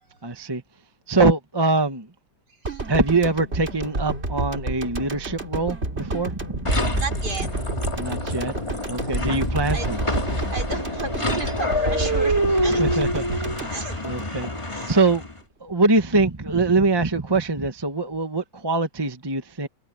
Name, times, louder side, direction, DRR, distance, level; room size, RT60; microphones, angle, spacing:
voice 1, 0.2-0.6 1.1-2.1 2.9-7.0 8.0-8.5 8.9-10.0 12.8-13.2 14.0-14.5 14.9-15.3 15.6-19.7, right 3 dB, 15° right, 1.1 m, -23 dB
sound 1, 2.6-14.8 15.1-15.3, right 2 dB, 30° right, 3.1 m, -30 dB
sound 2, 6.6-15.4, equal, 15° left, 2.2 m, -26 dB
voice 2, 7.0-7.6 9.0-9.2 9.7-9.9 10.3-13.0 13.7-14.4 14.7-14.9, right 3 dB, 50° right, 5.1 m, -34 dB
omnidirectional pair, 2.2 m